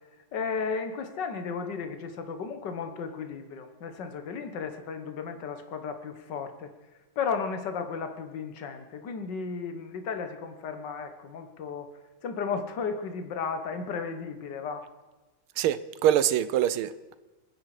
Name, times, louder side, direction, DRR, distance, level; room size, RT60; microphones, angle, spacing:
voice 1, 0.3-6.7 7.2-11.9 12.2-14.9, left 5 dB, 60° left, 7 dB, 1.9 m, -34 dB
voice 2, 15.6-17.1, right 11 dB, 85° right, 15 dB, 1.6 m, -25 dB
28.5 x 10.0 x 5.0 m, 1.2 s
omnidirectional pair, 2.3 m